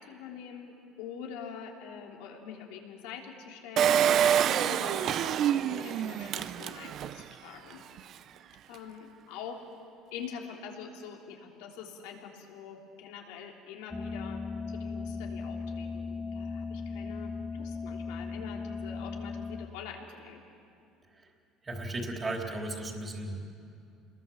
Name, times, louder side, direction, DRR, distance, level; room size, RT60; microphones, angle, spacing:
voice 1, 0.0-4.2 4.5-7.8 8.7-9.7 10.1-14.4 14.7-20.4, left 7 dB, 85° left, 0 dB, 3.4 m, -45 dB
Engine, 3.8-7.2 7.7-7.8 8.0-8.1, right 9 dB, 55° right, 0.7 m, -26 dB
sound 1, 13.9-19.7, left 4 dB, 10° left, 0.8 m, -37 dB
voice 2, 21.6-23.5, right 2 dB, 25° right, 2 dB, 3.5 m, -36 dB
29.0 x 21.5 x 7.2 m, 2.6 s
cardioid pair, 110°, 0 cm